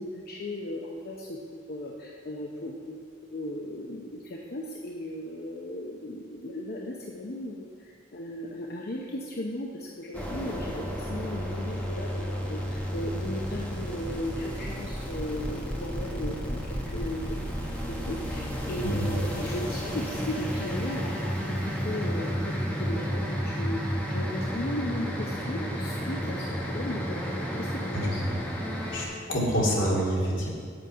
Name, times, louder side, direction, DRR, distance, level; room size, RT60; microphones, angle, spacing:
voice 1, 0.0-17.6 17.9-28.2, left 1 dB, 55° left, -1 dB, 0.7 m, -36 dB
sound 1, 10.1-29.0, equal, 10° left, 1.3 m, -32 dB
voice 2, 28.9-30.5, equal, 80° left, -5 dB, 2.6 m, -26 dB
8.0 x 7.7 x 5.6 m, 2.1 s
head